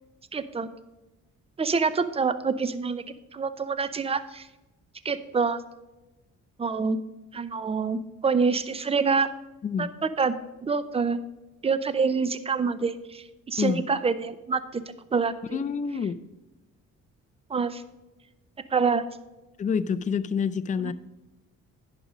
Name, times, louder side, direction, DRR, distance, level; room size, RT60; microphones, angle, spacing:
voice 1, 0.3-0.7 1.6-3.0 3.3-4.5 5.0-5.6 6.6-7.0 7.3-9.3 9.8-10.3 10.6-11.2 11.6-14.8 15.1-15.6 17.5-17.8 18.7-19.1 20.8-20.9, right 5 dB, 20° right, 13 dB, 0.5 m, -26 dB
voice 2, 15.5-16.2 19.6-20.9, left 6 dB, 25° left, 13 dB, 0.4 m, -27 dB
10.5 x 5.1 x 5.1 m, 1.0 s
cardioid pair, 90°, 30 cm